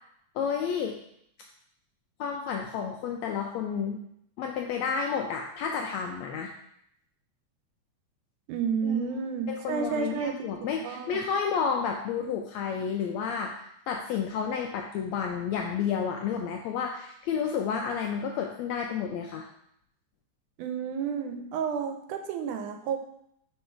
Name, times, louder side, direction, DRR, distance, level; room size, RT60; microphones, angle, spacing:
voice 1, 0.3-1.0 2.2-4.0 4.4-6.5 8.8-9.1 9.5-19.4, left 6 dB, 85° left, 2 dB, 1.6 m, -31 dB
voice 2, 8.5-11.2 20.6-23.0, right 6 dB, 85° right, 6 dB, 2.0 m, -31 dB
5.5 x 4.7 x 4.4 m, 0.73 s
omnidirectional pair, 3.6 m